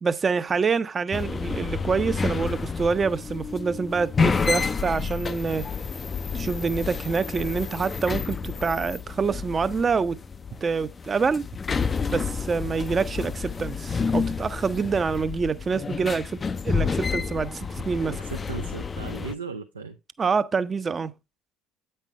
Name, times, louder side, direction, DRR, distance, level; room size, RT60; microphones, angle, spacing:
voice 1, 0.0-5.7 6.3-10.2 10.6-11.5 12.1-16.4 16.6-18.2 20.2-21.1, right 5 dB, 30° right, 0.6 m, -26 dB
sound 1, 1.1-19.3, left 5 dB, 30° left, 0.4 m, -30 dB
voice 2, 18.2-20.0, right 5 dB, 85° right, 0.5 m, -36 dB
8.9 x 5.6 x 3.2 m
figure-of-eight pair, 55°, 0 cm